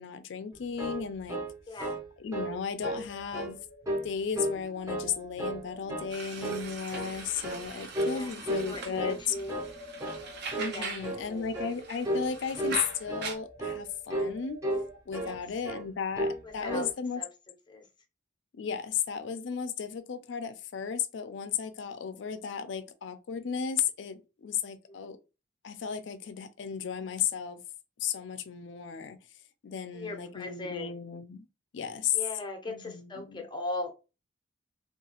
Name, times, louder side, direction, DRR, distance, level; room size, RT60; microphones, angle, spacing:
voice 1, 0.0-1.4 2.2-3.6 4.0-9.4 10.6-14.6 15.1-17.2 18.5-25.2 25.6-27.6 28.0-29.2 29.6-31.5 31.7-32.2 32.7-33.4, left 7 dB, 65° left, 0.4 m, -34 dB
sound 1, 0.5-2.1 2.3-2.6 2.8-3.5 3.8-4.6 4.9-5.6 5.9-6.1 6.4-7.2 7.4-7.7 7.9-8.2 8.5-9.2 9.5-9.7 10.0-10.2 10.5-10.8 11.0-11.3 11.5-11.8 12.0-12.3 12.5-12.8 13.1-13.3 13.6-13.8 14.1-14.3 14.6-15.4 15.6-15.9 16.1-16.4 16.7-16.9, right 1 dB, 15° right, 0.6 m, -33 dB
voice 2, 1.7-2.0 8.1-9.6 10.7-11.5 15.2-15.4 16.4-16.9 17.2-17.3 17.7-17.9 24.9-25.0 29.9-30.9 32.1-33.9, left 2 dB, 25° left, 0.6 m, -39 dB
sound 2, 3.1-15.0, right 1 dB, 75° right, 1.3 m, -51 dB
sound 3, 6.1-11.2 11.4-13.3, right 4 dB, 60° right, 0.6 m, -41 dB
2.8 x 2.3 x 2.8 m
head